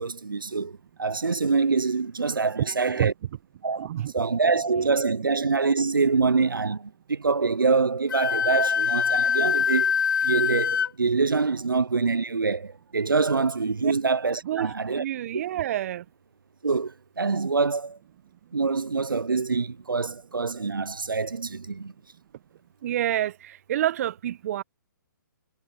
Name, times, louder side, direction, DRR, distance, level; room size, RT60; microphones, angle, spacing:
voice 1, 0.0-3.1 3.6-3.9 4.1-9.9 10.2-15.0 15.3-15.4 16.6-18.0 18.5-21.9, right 4 dB, 85° right, 0.8 m, -25 dB
voice 2, 3.8-4.1 13.8-13.9 14.4-16.0 22.8-24.6, right 12 dB, 45° right, 1.1 m, -28 dB
Wind instrument woodwind instrument, 8.1-10.9, left 7 dB, 75° left, 0.4 m, -24 dB
figure-of-eight pair, 135°, 11 cm